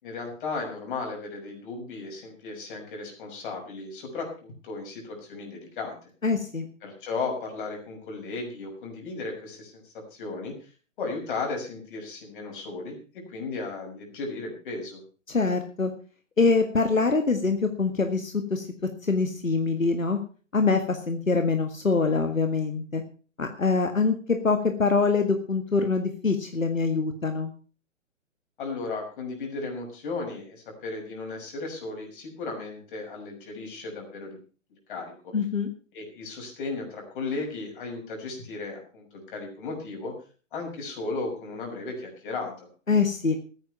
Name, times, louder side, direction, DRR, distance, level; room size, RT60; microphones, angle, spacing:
voice 1, 0.0-5.9 6.8-10.7 11.0-15.0 28.6-34.4 34.9-35.3 35.9-40.1 40.5-42.7, left 3 dB, 40° left, 1 dB, 6.2 m, -35 dB
voice 2, 6.2-6.6 15.3-15.9 16.4-18.7 19.0-20.2 20.5-23.0 23.4-27.5 35.3-35.7 42.9-43.4, left 4 dB, 80° left, 6 dB, 1.8 m, -24 dB
14.5 x 9.6 x 5.8 m, 0.38 s
figure-of-eight pair, 130°, 39 cm